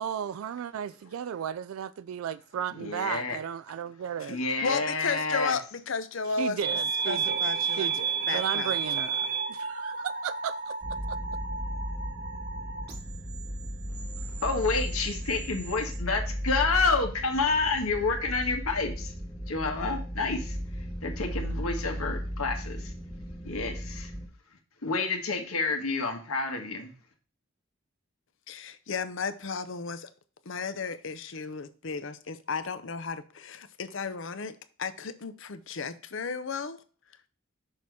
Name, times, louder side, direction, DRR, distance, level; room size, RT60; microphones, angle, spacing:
voice 1, 0.0-4.4 6.4-10.7 11.1-11.2, right 8 dB, 80° right, 0.3 m, -35 dB
voice 2, 2.7-3.4 4.3-5.5 14.4-19.1 19.5-20.6 21.0-22.9 23.4-24.1 24.8-26.9, left 4 dB, 90° left, 1.6 m, -29 dB
voice 3, 4.6-6.6 7.1-7.9 8.3-8.7 28.5-30.1 30.5-36.8, left 5 dB, 65° left, 0.6 m, -34 dB
sound 1, 6.6-16.0, right 6 dB, 50° right, 1.2 m, -33 dB
sound 2, 10.8-24.3, equal, 10° left, 0.9 m, -36 dB
6.4 x 4.2 x 4.6 m
head